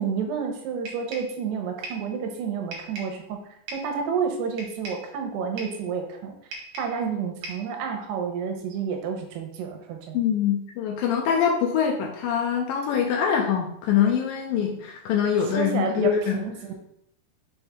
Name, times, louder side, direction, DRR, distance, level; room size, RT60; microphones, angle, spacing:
voice 1, 0.0-3.4 3.7-6.4 6.8-10.3 15.5-16.8, right 6 dB, 85° right, 3 dB, 3.1 m, -30 dB
sound 1, 0.9-1.4 1.8-2.1 2.7-3.2 3.7-4.0 4.6-5.1 5.6-5.9 6.5-7.0 7.4-7.7, right 2 dB, 60° right, 2.1 m, -39 dB
voice 2, 10.1-16.4, left 8 dB, 85° left, 1 dB, 2.0 m, -24 dB
6.9 x 4.4 x 3.6 m, 0.75 s
omnidirectional pair, 4.6 m